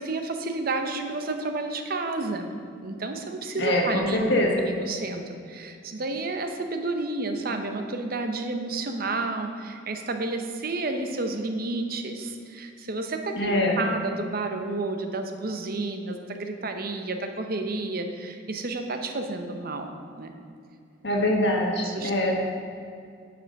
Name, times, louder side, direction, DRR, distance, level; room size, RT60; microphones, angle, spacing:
voice 1, 0.0-2.5 2.8-19.9 20.2-20.3 21.8-22.1, right 2 dB, 50° right, 5 dB, 0.8 m, -31 dB
voice 2, 3.6-4.6 13.3-13.8 21.0-22.3, left 1 dB, 60° left, 0 dB, 1.5 m, -23 dB
10.5 x 5.2 x 5.3 m, 2.4 s
head